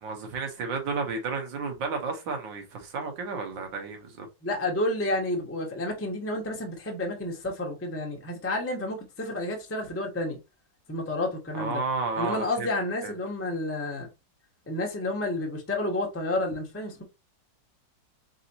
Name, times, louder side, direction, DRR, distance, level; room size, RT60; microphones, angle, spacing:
voice 1, 0.0-4.3 11.5-12.7 13.0-13.1, right 4 dB, 80° right, 1.8 m, -32 dB
voice 2, 4.4-10.4 10.9-11.8 12.2-14.1 14.7-17.0, left 1 dB, 15° left, 0.5 m, -30 dB
4.1 x 3.9 x 2.8 m
omnidirectional pair, 2.0 m